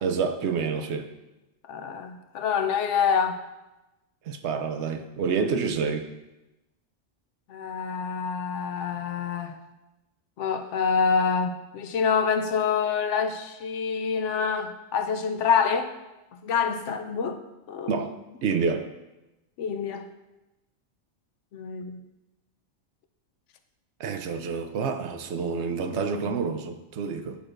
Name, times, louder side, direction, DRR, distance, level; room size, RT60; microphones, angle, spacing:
voice 1, 0.0-1.1 4.3-6.1 17.9-18.1 18.4-18.9 24.0-27.4, right 5 dB, 70° right, 0.9 m, -28 dB
voice 2, 1.7-3.4 7.5-9.5 10.4-15.9 16.4-17.4 17.7-17.9 19.6-20.1 21.5-22.0 25.9-26.3, left 6 dB, 80° left, 0.9 m, -26 dB
9.7 x 6.2 x 2.5 m
omnidirectional pair, 1.2 m